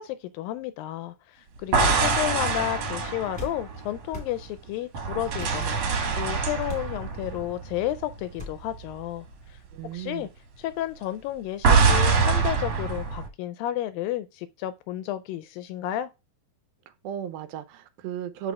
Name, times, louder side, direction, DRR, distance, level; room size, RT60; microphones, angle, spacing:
voice 1, 0.0-9.3 9.5-9.6 9.9-10.3 10.6-16.1, left 13 dB, 80° left, 2.1 m, -32 dB
sound 1, 1.6-4.5 4.9-8.4 8.6-8.9 11.6-13.3, right 4 dB, 60° right, 2.3 m, -24 dB
sound 2, 3.3-3.6 4.1-4.3 5.4-5.6 6.7-6.9 8.4-8.6, left 1 dB, 5° left, 1.5 m, -37 dB
voice 2, 9.7-10.3 17.0-18.5, right 9 dB, 80° right, 2.5 m, -35 dB
6.2 x 6.0 x 3.5 m
omnidirectional pair, 4.3 m